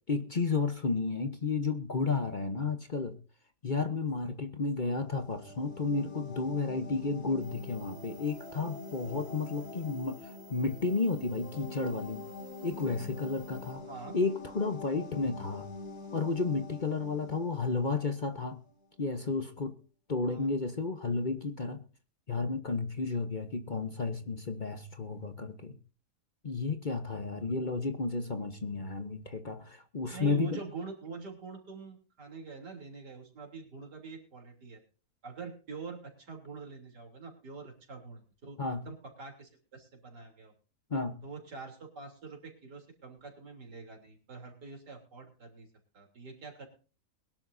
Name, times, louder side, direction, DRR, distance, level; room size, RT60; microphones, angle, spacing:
voice 1, 0.1-3.2 3.6-12.3 12.6-13.9 14.1-15.7 16.1-18.6 19.0-19.7 20.1-21.8 22.3-25.8 26.4-30.6 38.6-38.8 40.9-41.2, left 4 dB, 35° left, 8 dB, 1.0 m, -32 dB
sound 1, 5.0-18.5, left 3 dB, 70° left, 3.0 m, -46 dB
sound 2, 7.4-13.7, right 6 dB, 10° left, 6.4 m, -59 dB
voice 2, 30.1-34.8 35.2-38.6 38.9-40.5 41.2-45.7 45.9-46.7, right 4 dB, 90° right, 2 dB, 3.9 m, -45 dB
22.0 x 11.5 x 2.7 m, 0.38 s
omnidirectional pair, 1.7 m